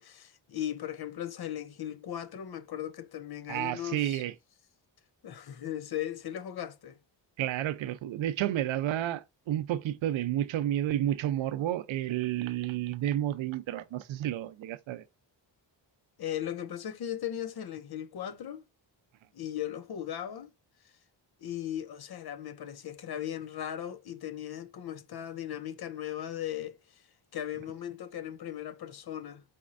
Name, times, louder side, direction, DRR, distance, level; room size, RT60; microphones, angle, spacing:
voice 1, 0.0-4.2 5.2-7.0 16.2-18.6 19.3-20.5 21.4-26.8 27.3-29.4, left 11 dB, 55° left, 0.6 m, -37 dB
voice 2, 3.5-4.3 7.4-15.1, right 12 dB, 90° right, 0.6 m, -31 dB
4.3 x 4.2 x 2.5 m
cardioid pair, 105°, 45 cm